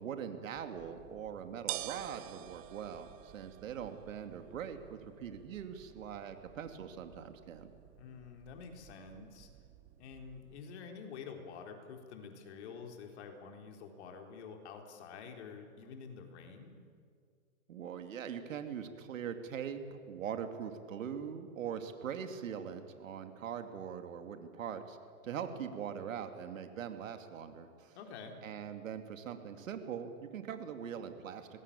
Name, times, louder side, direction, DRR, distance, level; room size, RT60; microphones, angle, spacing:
voice 1, 0.0-7.7 17.7-25.0 25.2-28.0 28.4-31.6, right 8 dB, 60° right, 7 dB, 2.8 m, -42 dB
sound 1, 0.5-10.6, right 16 dB, 20° right, 0.6 m, -49 dB
voice 2, 8.0-9.5 10.0-16.8 27.9-28.4, left 5 dB, 50° left, 4 dB, 4.2 m, -48 dB
25.5 x 20.0 x 8.8 m, 2.2 s
hypercardioid pair, 130°, 43 cm